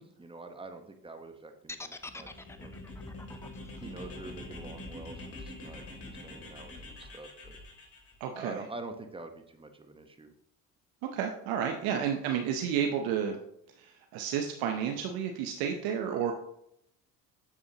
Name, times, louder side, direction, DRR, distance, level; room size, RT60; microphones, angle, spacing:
voice 1, 0.0-2.8 3.8-7.6 8.3-10.3, right 2 dB, 15° right, 6 dB, 1.0 m, -46 dB
sound 1, 1.7-5.7, left 2 dB, 10° left, 0.5 m, -46 dB
sound 2, 2.1-8.1, left 2 dB, 40° left, 2.7 m, -45 dB
voice 2, 8.2-8.7 11.1-13.4 13.8-16.3, right 8 dB, 80° right, 4 dB, 0.8 m, -31 dB
8.4 x 6.8 x 2.9 m, 0.77 s
supercardioid pair, 85°, 36 cm